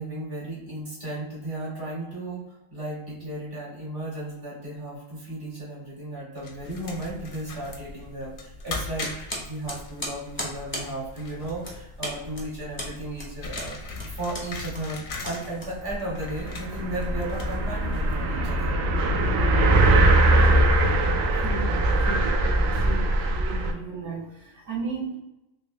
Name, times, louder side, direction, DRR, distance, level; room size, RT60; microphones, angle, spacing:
voice 1, 0.0-13.8 14.0-18.8 20.8-20.9 21.3-21.4, right 1 dB, 45° right, -7 dB, 1.7 m, -35 dB
sound 1, 6.4-18.4, left 3 dB, 55° left, 0.7 m, -40 dB
sound 2, 9.0-16.2, equal, 10° left, 0.7 m, -37 dB
sound 3, 15.9-16.0 16.2-23.7, right 1 dB, 85° right, 1.0 m, -21 dB
voice 2, 21.4-25.2, right 4 dB, 60° right, -7 dB, 1.0 m, -35 dB
3.4 x 2.6 x 3.0 m, 0.91 s
omnidirectional pair, 1.3 m